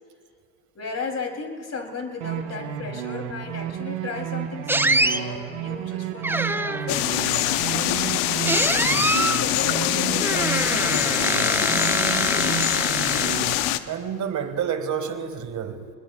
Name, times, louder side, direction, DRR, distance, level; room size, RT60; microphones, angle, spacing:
voice 1, 0.7-8.0 8.5-11.9, left 4 dB, 35° left, 4 dB, 3.0 m, -35 dB
sound 1, 2.2-13.5, right 10 dB, 65° right, 1.3 m, -32 dB
sound 2, 4.7-5.2 6.2-7.0 8.4-9.4 10.2-13.7, right 2 dB, 5° right, 0.6 m, -24 dB
sound 3, 6.9-13.8, left 15 dB, 70° left, 0.8 m, -24 dB
voice 2, 13.9-15.9, right 7 dB, 40° right, 8 dB, 1.8 m, -29 dB
26.0 x 20.5 x 2.3 m, 2.3 s
hypercardioid pair, 70°, 43 cm